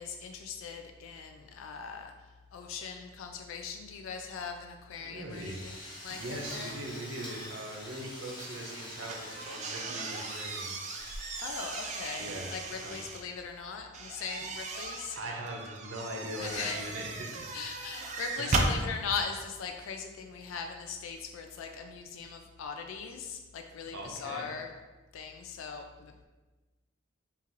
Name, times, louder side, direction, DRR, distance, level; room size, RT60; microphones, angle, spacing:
voice 1, 0.0-2.1 2.5-6.8 11.4-15.2 16.4-16.8 17.5-24.7 25.1-26.1, left 6 dB, 75° left, 4 dB, 0.3 m, -40 dB
voice 2, 5.0-5.7 6.1-10.7 12.2-13.0 15.2-17.5 18.4-18.6 23.9-24.5, right 1 dB, 70° right, 0 dB, 0.8 m, -40 dB
Drill, 5.3-13.2, left 1 dB, 20° left, 0.7 m, -46 dB
sound 1, 9.0-13.2 13.9-18.8, right 3 dB, 35° right, 0.3 m, -36 dB
5.4 x 2.5 x 3.0 m, 1.2 s
head